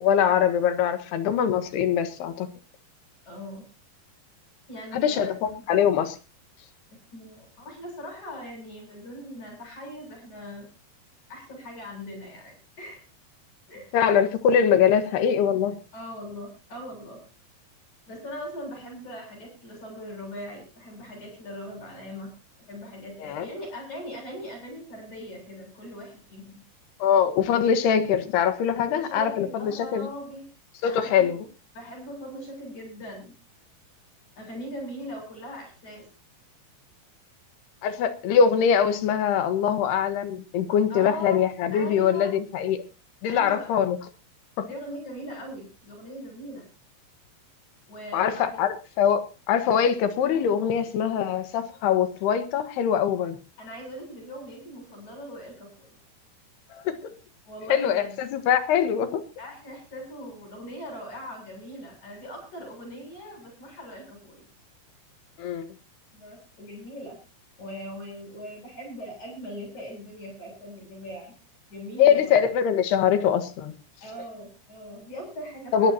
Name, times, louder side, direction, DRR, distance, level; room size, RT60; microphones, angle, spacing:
voice 1, 0.0-2.5 4.9-6.2 13.9-15.8 23.2-23.5 27.0-30.1 30.8-31.5 37.8-42.8 43.2-44.0 44.6-44.7 48.1-53.4 56.7-57.1 57.7-59.2 65.4-65.7 72.0-73.7 75.7-75.9, left 8 dB, 85° left, 3.6 m, -23 dB
voice 2, 3.2-3.7 4.7-5.6 6.9-10.7 11.3-13.0 13.7-13.9 15.9-17.2 18.1-22.3 22.6-26.6 28.8-30.4 30.8-31.3 31.7-33.3 34.4-36.1 40.9-42.3 43.3-43.7 44.6-46.7 47.9-48.7 53.6-56.0 57.5-58.2 59.4-64.5 66.1-67.2 67.6-71.3 71.7-72.3 74.0-75.9, equal, 45° left, 9.2 m, -40 dB
21.0 x 15.0 x 2.9 m
omnidirectional pair, 4.6 m